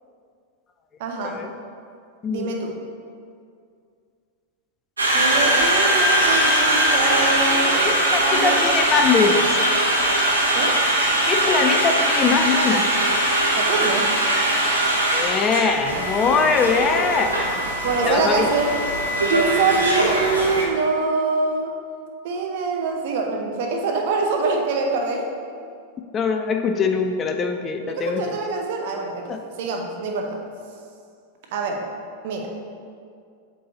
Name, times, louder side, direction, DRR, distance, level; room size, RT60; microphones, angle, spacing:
voice 1, 1.0-1.5 2.3-2.8 5.1-7.8 8.2-8.6 10.5-10.8 13.6-14.2 17.8-18.7 19.3-21.7 22.2-25.2 27.9-30.4 31.5-31.9 32.2-32.5, right 3 dB, 50° right, 2 dB, 0.8 m, -25 dB
voice 2, 2.2-2.6 7.8-9.5 11.3-12.8 15.0-17.5 18.0-18.5 26.1-28.2 29.3-29.4, left 5 dB, 25° left, 5 dB, 0.4 m, -22 dB
Conversation, 5.0-20.6, right 1 dB, 75° right, 1.0 m, -21 dB
7.6 x 3.3 x 4.0 m, 2.3 s
figure-of-eight pair, 90°, 0 cm